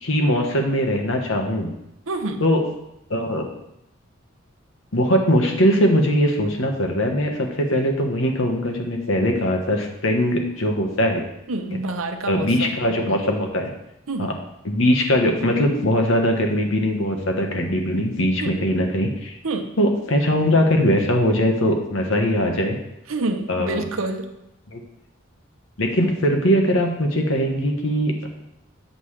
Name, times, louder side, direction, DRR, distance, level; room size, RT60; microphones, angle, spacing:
voice 1, 0.0-1.7 2.4-2.6 3.1-3.5 4.9-11.2 12.3-13.7 14.2-14.3 14.6-19.3 19.8-22.8 23.5-23.9 24.7-24.8 25.8-28.3, equal, 70° left, 2 dB, 1.2 m, -21 dB
voice 2, 2.1-2.4 11.5-12.8 14.1-14.3 18.4-18.5 19.4-19.7 23.1-24.3, right 2 dB, 75° right, 6 dB, 0.8 m, -27 dB
7.8 x 7.3 x 3.3 m, 0.84 s
head